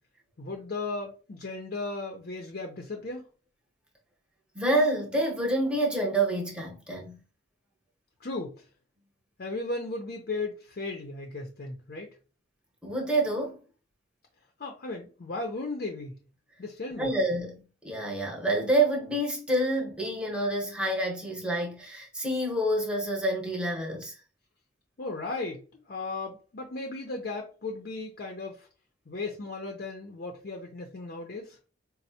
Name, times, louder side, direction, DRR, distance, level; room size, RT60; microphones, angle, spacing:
voice 1, 0.4-3.3 8.2-8.6 9.4-12.1 14.6-16.2 16.6-17.1 25.0-28.7 29.1-31.6, left 3 dB, 55° left, 0.6 m, -36 dB
voice 2, 4.5-7.2 12.8-13.6 17.0-24.1, right 1 dB, 5° right, 0.8 m, -28 dB
4.2 x 2.1 x 2.7 m
head